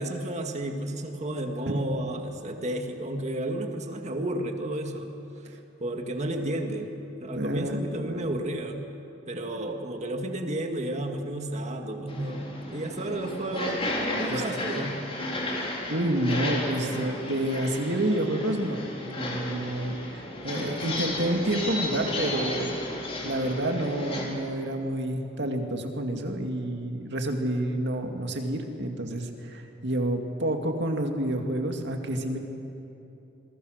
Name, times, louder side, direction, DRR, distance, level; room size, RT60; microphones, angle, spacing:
voice 1, 0.0-5.1 5.8-8.9 9.3-13.8 14.2-15.0, right 1 dB, 35° right, 4 dB, 1.9 m, -32 dB
voice 2, 7.3-8.3 14.3-14.4 15.9-22.8 23.2-32.4, right 1 dB, 60° right, 4 dB, 2.3 m, -29 dB
sound 1, 12.1-24.2, left 1 dB, 30° left, 3.9 m, -33 dB
27.0 x 22.5 x 6.6 m, 2.9 s
head